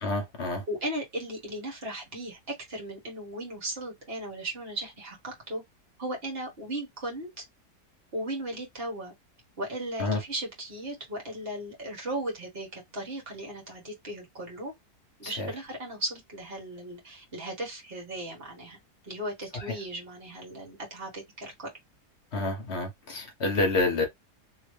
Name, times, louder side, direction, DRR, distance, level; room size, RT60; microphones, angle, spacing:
voice 1, 0.0-0.6 10.0-10.2 15.2-15.5 22.3-24.0, left 2 dB, 50° left, 0.9 m, -28 dB
voice 2, 0.7-5.6 6.0-7.4 8.1-9.1 9.6-14.7 15.2-18.8 19.0-21.7, right 1 dB, 35° right, 1.6 m, -36 dB
3.1 x 2.8 x 3.1 m
omnidirectional pair, 1.8 m